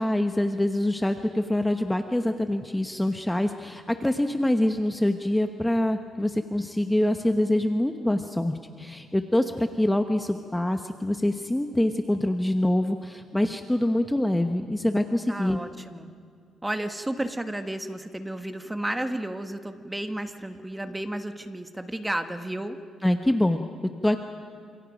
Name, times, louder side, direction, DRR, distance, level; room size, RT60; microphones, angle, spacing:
voice 1, 0.0-15.6 23.0-24.2, left 1 dB, 10° left, 6 dB, 1.0 m, -25 dB
voice 2, 15.3-16.1 16.6-22.8, right 1 dB, 10° right, 7 dB, 1.6 m, -32 dB
28.5 x 27.5 x 5.3 m, 2.2 s
cardioid pair, 90°, 0 cm